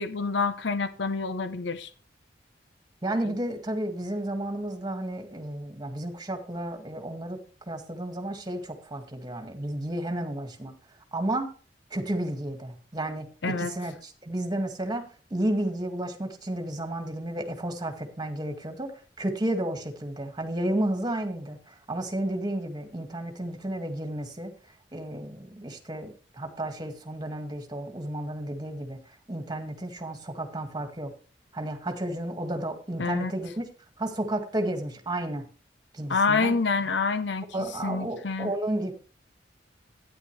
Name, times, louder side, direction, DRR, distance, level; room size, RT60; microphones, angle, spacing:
voice 1, 0.0-1.9 3.2-3.3 13.4-13.7 33.0-33.3 36.1-37.5 37.8-38.5, left 4 dB, 75° left, 0.8 m, -27 dB
voice 2, 3.0-10.7 11.1-11.5 11.9-15.0 15.3-18.9 19.2-24.5 24.9-29.0 29.3-31.1 31.5-33.6 34.0-35.4 35.9-36.6 37.5-38.9, right 1 dB, 25° right, 2.0 m, -32 dB
12.5 x 10.0 x 3.3 m
head